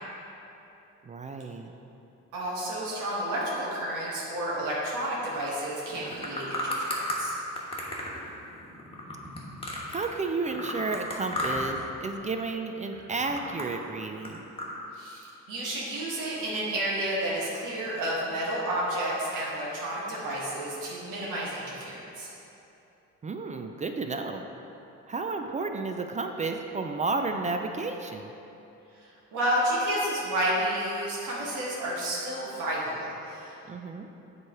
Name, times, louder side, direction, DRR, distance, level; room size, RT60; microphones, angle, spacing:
voice 1, 1.0-1.7 9.9-14.4 23.2-24.4 25.1-28.3 33.7-34.1, right 3 dB, 25° right, 5 dB, 0.3 m, -32 dB
voice 2, 2.3-7.3 14.9-22.3 29.3-33.5, right 1 dB, 85° right, -6 dB, 1.4 m, -31 dB
sound 1, 5.9-7.2 7.6-10.1 10.5-11.8 12.1-12.5 12.9-14.7, left 1 dB, 20° left, 1.2 m, -34 dB
7.4 x 3.2 x 4.7 m, 2.9 s
cardioid pair, 90°, 30 cm